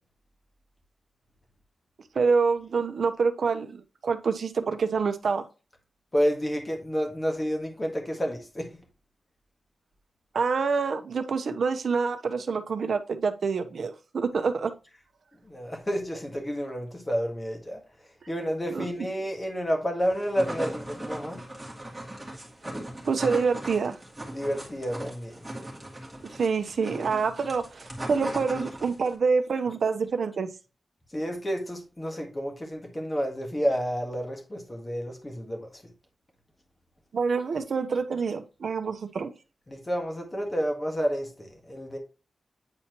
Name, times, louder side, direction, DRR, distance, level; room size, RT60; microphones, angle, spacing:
voice 1, 2.1-5.4 10.3-14.7 18.7-18.9 23.0-24.0 26.4-30.5 37.1-39.3, right 5 dB, 70° right, 0.8 m, -26 dB
voice 2, 6.1-8.7 15.5-17.8 18.3-21.4 24.3-25.3 31.1-35.7 39.7-42.0, equal, 20° left, 1.7 m, -30 dB
sound 1, 20.1-29.2, right 1 dB, 10° right, 2.3 m, -37 dB
8.7 x 4.3 x 3.0 m
wide cardioid pair, 135°, 0 cm